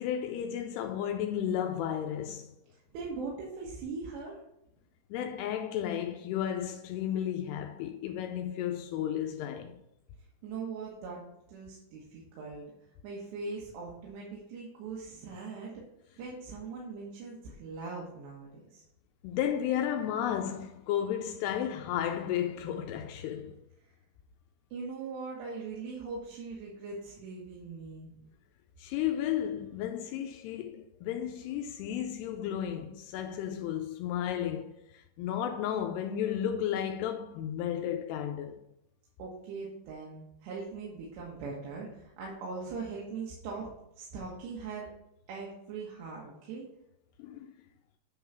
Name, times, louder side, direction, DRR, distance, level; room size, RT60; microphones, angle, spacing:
voice 1, 0.0-2.5 5.1-9.8 19.2-23.6 28.8-38.6 47.2-47.5, left 10 dB, 85° left, 2.6 m, -33 dB
voice 2, 2.9-4.4 10.4-11.2 11.5-12.6 13.0-15.8 16.2-18.8 23.8-23.9 24.7-28.2 39.2-43.7 44.0-44.9 45.3-46.7, right 4 dB, 85° right, 3.5 m, -41 dB
9.3 x 3.8 x 5.7 m
omnidirectional pair, 4.8 m